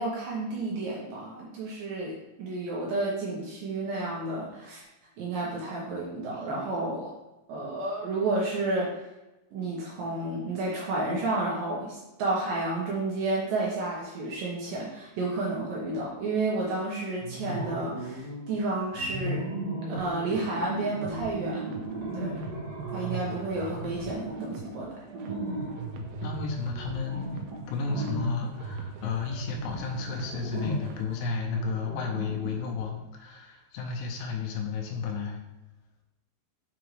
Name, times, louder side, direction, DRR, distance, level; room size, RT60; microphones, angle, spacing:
voice 1, 0.0-4.9 5.2-7.1 7.5-9.0 9.5-19.5 19.9-21.7 22.1-22.4 22.9-25.0, right 2 dB, 70° right, -4 dB, 2.3 m, -31 dB
sound 1, 17.2-18.6 18.9-32.8, right 2 dB, 55° right, 1.8 m, -36 dB
sound 2, 20.0-31.2, right 6 dB, 85° right, 2.8 m, -45 dB
voice 2, 26.2-35.4, left 5 dB, 80° left, 1 dB, 2.7 m, -33 dB
6.2 x 5.1 x 3.1 m, 1.0 s
omnidirectional pair, 4.9 m